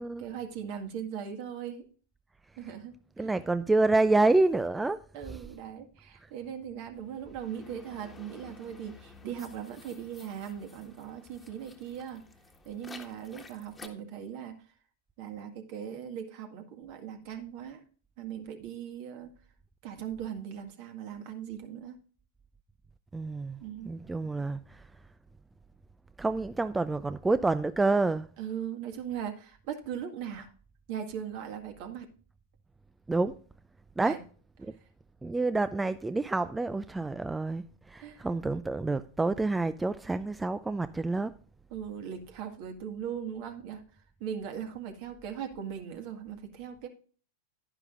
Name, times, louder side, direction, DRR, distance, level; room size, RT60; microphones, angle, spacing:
voice 1, 0.2-1.9 2.6-3.3 5.1-12.3 12.7-14.6 15.2-17.8 18.2-19.3 19.8-22.0 23.6-24.0 28.4-30.5 30.9-32.1 34.0-34.2 38.0-38.2 41.7-43.8 44.2-46.9, right 8 dB, 50° right, 1.9 m, -39 dB
voice 2, 3.2-5.0 5.3-5.4 6.2-6.3 23.1-24.9 26.2-28.3 33.1-33.4 34.0-34.2 34.6-34.7 35.2-41.3, right 3 dB, 10° right, 0.4 m, -28 dB
sound 1, 7.0-13.9, left 3 dB, 15° left, 1.5 m, -52 dB
10.5 x 10.5 x 2.5 m
figure-of-eight pair, 95°, 0 cm